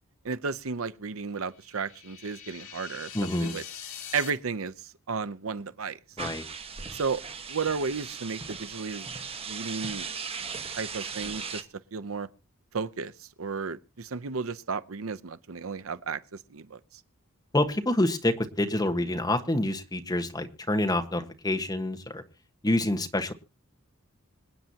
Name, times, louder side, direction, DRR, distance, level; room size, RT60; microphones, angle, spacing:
voice 1, 0.2-3.1 3.4-3.6 4.1-6.0 6.9-7.2 7.5-9.1 9.4-10.1 10.8-11.6 11.9-12.3 12.7-17.0, right 5 dB, 75° right, 0.7 m, -33 dB
sound 1, 1.5-4.3, left 8 dB, 90° left, 2.5 m, -43 dB
voice 2, 3.1-3.5 6.2-6.5 17.5-22.2 22.6-23.3, left 1 dB, 20° left, 1.3 m, -27 dB
sound 2, 6.2-11.6, right 5 dB, 25° right, 1.1 m, -38 dB
26.0 x 9.0 x 2.8 m
head